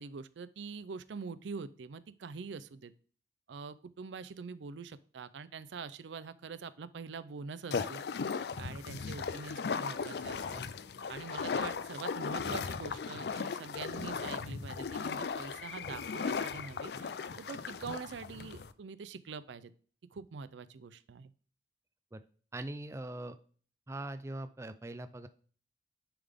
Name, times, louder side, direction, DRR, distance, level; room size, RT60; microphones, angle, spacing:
voice 1, 0.0-2.9 3.5-8.0 8.6-10.6 11.1-19.7 20.1-21.3, right 5 dB, 80° right, 14 dB, 0.5 m, -44 dB
sound 1, 7.7-18.7, left 5 dB, 60° left, 0.4 m, -37 dB
voice 2, 22.5-23.4 23.9-25.3, right 1 dB, 15° right, 9 dB, 0.3 m, -41 dB
10.0 x 3.6 x 3.5 m, 0.43 s
head